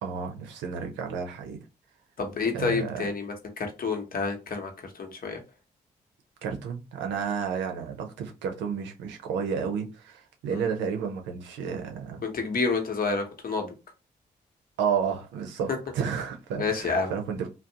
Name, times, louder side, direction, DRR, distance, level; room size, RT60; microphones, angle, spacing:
voice 1, 0.0-1.6 2.5-3.0 6.4-12.2 14.8-17.5, right 6 dB, 85° right, 0.6 m, -31 dB
voice 2, 2.2-4.7 5.0-5.4 10.5-10.7 12.2-13.7 16.6-17.1, left 4 dB, 55° left, 0.9 m, -29 dB
2.5 x 2.0 x 2.7 m
supercardioid pair, 45°, 18 cm